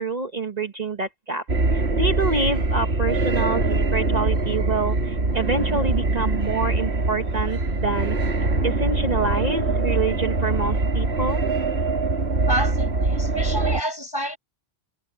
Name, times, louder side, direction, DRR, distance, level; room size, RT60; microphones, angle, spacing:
voice 1, 0.0-1.4 1.7-3.6 3.9-8.2 8.6-11.5, right 3 dB, 40° right, 1.3 m, -26 dB
sound 1, 1.5-13.8, right 3 dB, 70° right, 2.5 m, -23 dB
voice 2, 12.5-14.4, equal, 20° left, 6.5 m, -28 dB
omnidirectional pair, 1.1 m